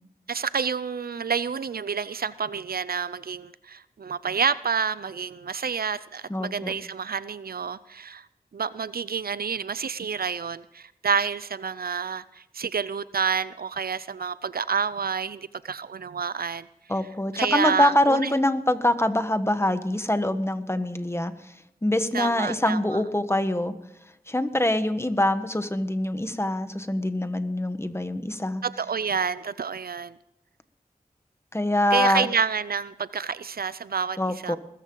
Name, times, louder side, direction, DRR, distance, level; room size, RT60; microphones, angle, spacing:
voice 1, 0.3-8.3 8.5-16.7 17.3-18.3 22.1-23.0 28.6-30.2 31.9-34.2 34.4-34.6, right 6 dB, 70° right, 17 dB, 0.5 m, -29 dB
voice 2, 6.3-6.7 16.9-21.3 21.8-23.7 24.3-28.6 31.5-32.3 34.2-34.6, left 1 dB, 15° left, 10 dB, 1.3 m, -24 dB
20.5 x 14.0 x 3.9 m, 0.85 s
wide cardioid pair, 55°, 16 cm